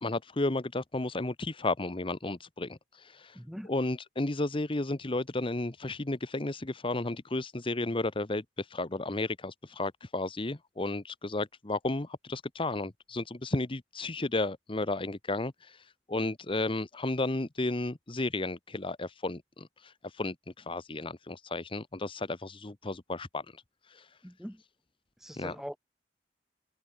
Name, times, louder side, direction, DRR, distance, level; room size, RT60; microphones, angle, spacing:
voice 1, 0.0-3.4 3.6-24.2 25.3-25.6, left 2 dB, 30° left, 1.0 m, -33 dB
voice 2, 3.4-3.7 24.2-24.6 25.2-25.8, equal, ahead, 5.2 m, -42 dB
head